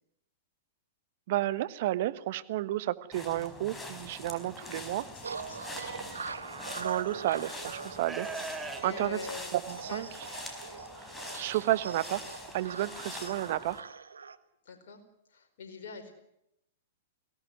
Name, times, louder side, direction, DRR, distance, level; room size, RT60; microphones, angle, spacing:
voice 1, 1.3-5.0 6.7-8.3 8.6-9.2 9.5-10.1 11.0-12.2 12.5-13.8, right 15 dB, 55° right, 14 dB, 1.4 m, -32 dB
sound 1, 3.1-13.8, left 2 dB, 10° left, 4.6 m, -44 dB
voice 2, 5.1-6.1 8.8-9.5 9.9-10.1 14.6-15.0 15.3-16.1, left 5 dB, 60° left, 4 dB, 4.7 m, -44 dB
sound 2, 5.2-14.4, right 5 dB, 85° right, 1.3 m, -42 dB
Livestock farm animals working animals, 5.7-6.3 7.2-7.3 8.0-10.0, right 3 dB, 10° right, 2.8 m, -42 dB
23.0 x 17.5 x 9.4 m, 0.80 s
hypercardioid pair, 110°, 0 cm